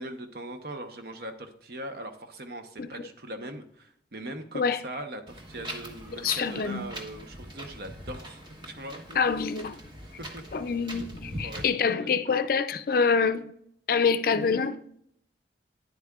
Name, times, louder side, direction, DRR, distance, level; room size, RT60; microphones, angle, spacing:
voice 1, 0.0-9.2 10.2-10.4 11.4-12.4, right 1 dB, 60° right, 0.9 m, -40 dB
Wind, 5.3-11.7, equal, 25° right, 1.2 m, -42 dB
voice 2, 6.2-6.9 9.2-9.8 10.5-13.5 13.9-14.8, left 5 dB, 55° left, 0.4 m, -26 dB
9.9 x 8.1 x 2.4 m
head